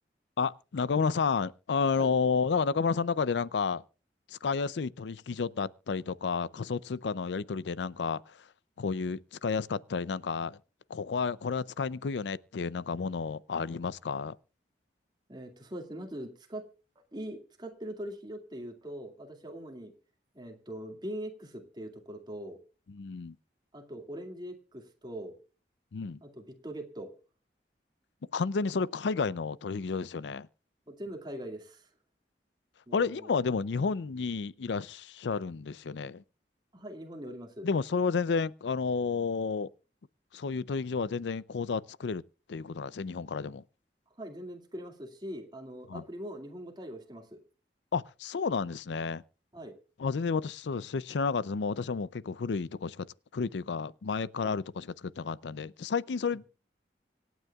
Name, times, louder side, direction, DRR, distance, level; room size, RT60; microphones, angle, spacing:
voice 1, 0.4-3.8 4.3-8.5 8.8-10.6 10.9-14.3 22.9-23.3 25.9-26.2 28.3-30.5 32.9-36.2 37.6-39.7 40.3-42.2 42.5-43.6 45.9-46.0 47.9-49.2 50.0-53.1 53.3-56.5, left 5 dB, 85° left, 0.5 m, -31 dB
voice 2, 15.3-16.7 17.1-19.9 20.3-22.6 23.7-25.3 26.2-27.1 30.9-31.9 32.9-33.3 36.7-37.7 44.2-47.4 49.5-49.8 54.4-54.6, right 1 dB, 25° right, 2.2 m, -42 dB
25.5 x 9.2 x 2.4 m
head